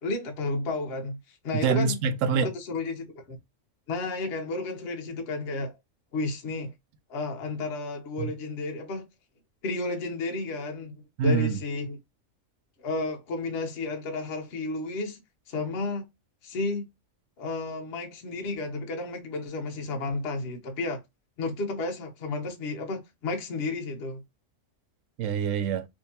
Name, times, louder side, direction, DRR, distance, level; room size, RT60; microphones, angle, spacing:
voice 1, 0.0-1.2 1.4-2.0 2.3-3.4 3.9-5.7 6.1-6.7 7.1-9.0 9.6-12.0 12.8-15.2 15.5-16.0 16.4-16.9 17.4-21.0 21.4-24.2, left 3 dB, 50° left, 0.9 m, -32 dB
voice 2, 1.5-2.5 8.2-8.3 11.2-11.6 25.2-25.9, right 5 dB, 70° right, 0.9 m, -25 dB
3.6 x 2.7 x 2.7 m
omnidirectional pair, 1.5 m